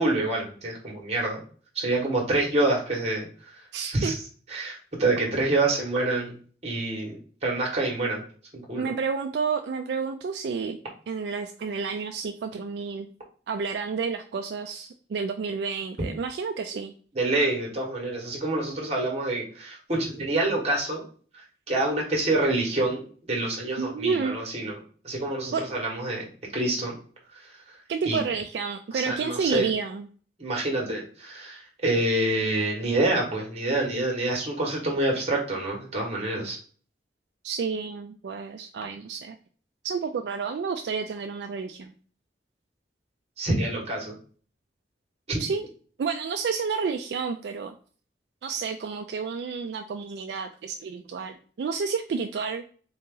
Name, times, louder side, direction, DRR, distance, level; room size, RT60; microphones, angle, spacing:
voice 1, 0.0-1.4 1.7-3.6 3.9-4.1 4.5-6.3 6.6-8.2 8.5-8.9 17.1-21.0 21.3-23.0 23.3-24.8 25.0-26.9 27.3-27.5 28.0-28.2 28.9-29.7 30.4-36.6 43.4-44.2 45.3-45.4, right 2 dB, 35° right, -1 dB, 1.3 m, -27 dB
voice 2, 3.7-4.2 8.8-10.8 11.1-13.1 13.5-16.9 23.8-24.4 25.5-25.6 27.9-30.1 37.4-39.4 39.8-41.9 45.4-45.6 46.0-47.7 48.4-52.6, right 5 dB, 70° right, 6 dB, 0.3 m, -30 dB
3.8 x 2.8 x 3.7 m, 0.44 s
head